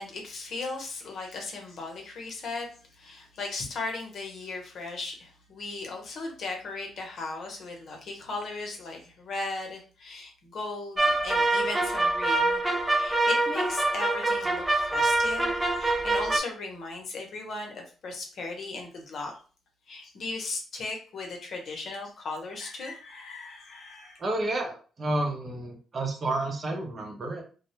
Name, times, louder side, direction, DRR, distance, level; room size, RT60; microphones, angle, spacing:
voice 1, 0.0-12.6 12.9-19.3 19.9-24.2, left 3 dB, 60° left, 1 dB, 0.7 m, -37 dB
sound 1, 11.0-16.4, right 2 dB, 15° right, 0.4 m, -25 dB
voice 2, 24.2-27.4, right 2 dB, 40° right, 1 dB, 0.7 m, -30 dB
2.2 x 2.0 x 2.9 m, 0.38 s
cardioid pair, 90°, 0 cm